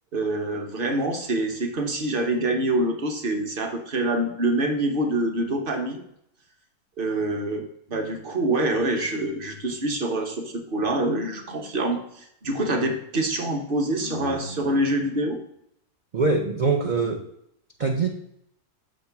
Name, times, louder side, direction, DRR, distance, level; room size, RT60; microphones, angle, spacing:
voice 1, 0.1-6.1 7.0-7.6 7.9-15.4, right 1 dB, 40° right, 4 dB, 0.9 m, -26 dB
voice 2, 16.1-17.3 17.8-18.1, right 4 dB, 85° right, 2 dB, 0.4 m, -23 dB
6.7 x 3.6 x 5.8 m, 0.72 s
omnidirectional pair, 1.7 m